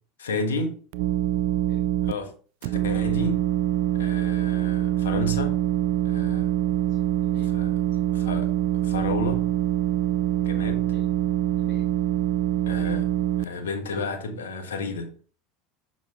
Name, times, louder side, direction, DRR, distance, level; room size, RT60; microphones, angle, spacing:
voice 1, 0.2-0.8 2.0-2.3 2.6-3.5 3.9-5.5 6.0-6.5 7.5-7.7 8.1-8.5 8.8-9.4 10.4-10.8 12.7-13.1 13.4-15.1, left 2 dB, 90° left, 1.2 m, -31 dB
sound 1, 0.9-2.1 2.6-13.4, right 13 dB, 70° right, 0.3 m, -24 dB
voice 2, 6.6-7.5 10.4-11.1 11.6-11.9, left 3 dB, 50° left, 2.0 m, -49 dB
6.4 x 5.0 x 3.4 m
hypercardioid pair, 90°, 0 cm